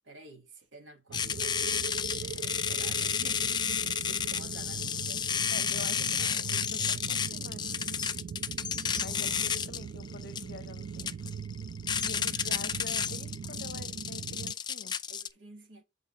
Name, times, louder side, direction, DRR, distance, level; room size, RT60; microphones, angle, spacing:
voice 1, 0.0-5.3 6.0-7.3 12.3-13.0 15.1-15.8, right 2 dB, 80° right, 1.8 m, -52 dB
sound 1, 1.1-15.3, left 7 dB, 25° left, 0.4 m, -32 dB
sound 2, 1.1-14.5, right 6 dB, 60° right, 0.3 m, -41 dB
voice 2, 5.5-7.9 8.4-8.5 8.9-11.3 12.0-15.0, left 3 dB, 60° left, 0.8 m, -46 dB
7.3 x 3.9 x 3.6 m
head